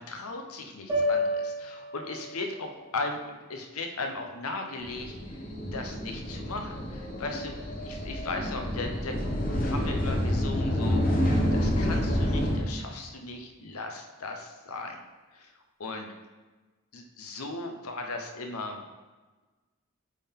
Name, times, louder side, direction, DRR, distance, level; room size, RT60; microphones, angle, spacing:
voice 1, 0.0-5.1 5.7-7.5 7.8-9.2 9.5-14.9 15.3-15.5 15.8-16.1 16.9-18.8, left 3 dB, 90° left, 4 dB, 0.8 m, -37 dB
sound 1, 0.9-5.2, left 1 dB, 15° right, 1.9 m, -33 dB
sound 2, 4.8-12.6, equal, 40° left, 1.0 m, -28 dB
8.4 x 3.7 x 3.7 m, 1.3 s
head